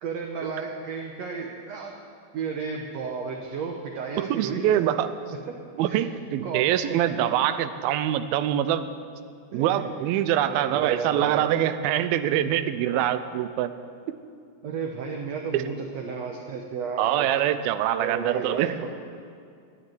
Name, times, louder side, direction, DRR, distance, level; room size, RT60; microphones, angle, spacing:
voice 1, 0.0-2.0 2.3-4.7 5.5-6.1 6.4-7.3 9.5-9.8 10.5-11.5 14.6-17.3 17.9-19.0, right 5 dB, 70° right, 1 dB, 1.6 m, -33 dB
voice 2, 4.2-5.1 5.8-8.9 9.5-13.7 15.5-15.6 17.0-18.7, right 11 dB, 90° right, 12 dB, 2.5 m, -24 dB
13.0 x 9.8 x 9.2 m, 2.4 s
omnidirectional pair, 4.2 m